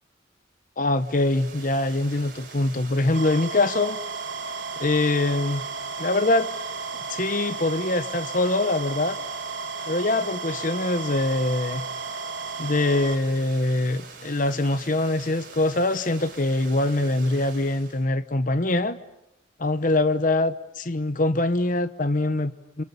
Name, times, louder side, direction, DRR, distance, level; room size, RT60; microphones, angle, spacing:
voice 1, 0.8-4.0 4.8-5.6 6.0-6.5 7.1-9.2 9.9-11.8 12.6-19.0 19.6-22.8, left 2 dB, 45° left, 12 dB, 0.9 m, -23 dB
Water, 0.9-18.1, right 4 dB, 45° right, 7.3 m, -44 dB
sound 1, 3.1-13.2, right 4 dB, 90° right, 2.2 m, -34 dB
29.5 x 27.5 x 7.0 m, 0.87 s
head